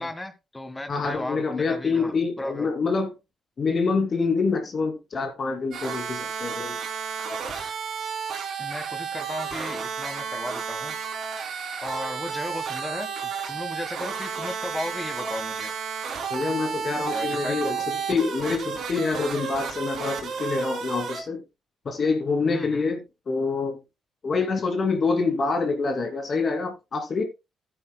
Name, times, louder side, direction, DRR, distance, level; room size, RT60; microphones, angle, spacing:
voice 1, 0.0-2.7 8.6-11.0 11.8-15.8 17.1-17.8 22.5-22.9, left 1 dB, 15° left, 1.7 m, -35 dB
voice 2, 0.9-3.1 3.6-6.8 16.3-21.4 21.8-23.8 24.2-27.2, left 4 dB, 45° left, 2.8 m, -26 dB
sound 1, 5.7-21.2, right 6 dB, 70° right, 3.2 m, -32 dB
13.5 x 9.4 x 2.3 m
cardioid pair, 90°, 0 cm